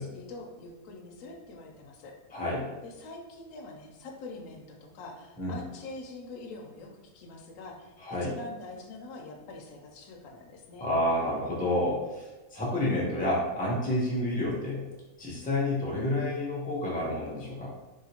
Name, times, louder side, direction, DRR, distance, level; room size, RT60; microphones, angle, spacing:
voice 1, 0.0-2.1 2.8-6.9 7.1-7.9 8.2-11.0, left 3 dB, 70° left, 1 dB, 0.9 m, -44 dB
voice 2, 2.3-2.7 5.4-5.6 8.0-8.3 10.8-12.2 12.5-14.8 15.2-17.7, left 1 dB, 10° left, -6 dB, 0.4 m, -29 dB
3.2 x 2.8 x 2.8 m, 1.1 s
omnidirectional pair, 1.6 m